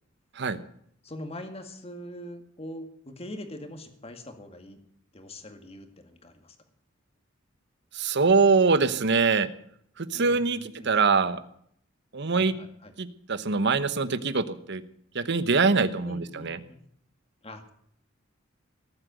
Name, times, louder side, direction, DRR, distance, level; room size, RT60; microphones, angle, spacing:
voice 1, 1.0-4.8 5.1-6.6 10.1-10.9 12.3-12.9 16.0-16.8 17.4-17.7, left 1 dB, 30° left, 6 dB, 2.0 m, -42 dB
voice 2, 7.9-9.5 10.0-10.6 10.8-11.4 12.1-12.5 13.0-14.8 15.1-16.6, right 4 dB, 60° right, 13 dB, 1.0 m, -23 dB
18.5 x 8.0 x 9.1 m, 0.68 s
head